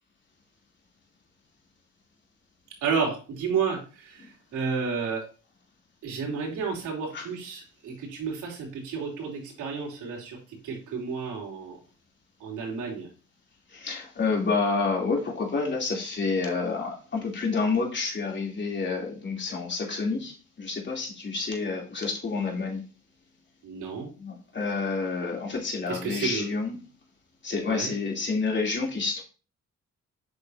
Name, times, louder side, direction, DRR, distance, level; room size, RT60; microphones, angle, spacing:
voice 1, 2.8-4.3 4.5-5.2 6.0-10.4 10.6-11.8 12.4-13.1 23.6-24.1 25.9-26.5 27.7-27.9, right 5 dB, 80° right, -2 dB, 3.2 m, -31 dB
voice 2, 13.7-22.8 24.2-26.8 27.4-29.2, left 4 dB, 40° left, -1 dB, 3.1 m, -29 dB
8.0 x 6.2 x 2.8 m, 0.36 s
cardioid pair, 90°, 30 cm